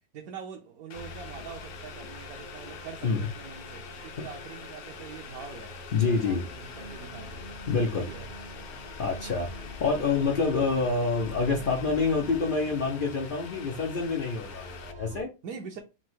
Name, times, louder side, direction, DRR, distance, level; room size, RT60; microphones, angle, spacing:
voice 1, 0.0-5.8 6.0-7.4 7.8-8.3 9.2-9.4 15.4-15.8, right 6 dB, 70° right, 1.1 m, -44 dB
Boiling, 0.9-14.9, left 9 dB, 70° left, 1.0 m, -46 dB
sound 1, 0.9-15.2, left 1 dB, 40° right, 0.7 m, -45 dB
voice 2, 5.9-6.5 7.7-8.1 9.0-9.5 9.8-15.3, left 4 dB, 90° left, 0.4 m, -27 dB
sound 2, 6.0-12.8, right 1 dB, 50° left, 0.6 m, -47 dB
4.3 x 2.1 x 4.4 m
omnidirectional pair, 1.8 m